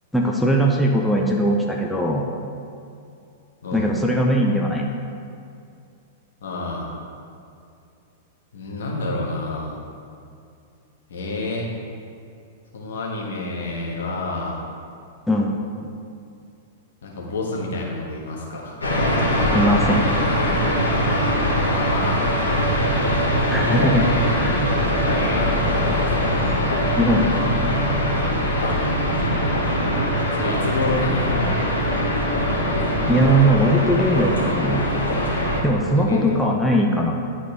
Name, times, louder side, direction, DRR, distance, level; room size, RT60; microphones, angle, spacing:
voice 1, 0.1-2.3 3.7-4.9 15.3-15.5 19.5-20.1 23.5-24.0 24.3-24.5 26.9-27.3 33.1-34.8 35.6-37.1, right 1 dB, 5° left, -1 dB, 0.6 m, -20 dB
voice 2, 6.4-6.9 8.5-9.8 11.1-11.7 12.7-14.6 17.0-18.8 21.6-22.6 23.4-24.4 24.8-26.4 28.6-29.0 30.3-31.5 35.7-36.4, left 2 dB, 60° left, -2 dB, 1.4 m, -29 dB
sound 1, 18.8-35.6, equal, 80° left, 1.5 m, -21 dB
10.5 x 4.1 x 3.4 m, 2.5 s
figure-of-eight pair, 100°, 0 cm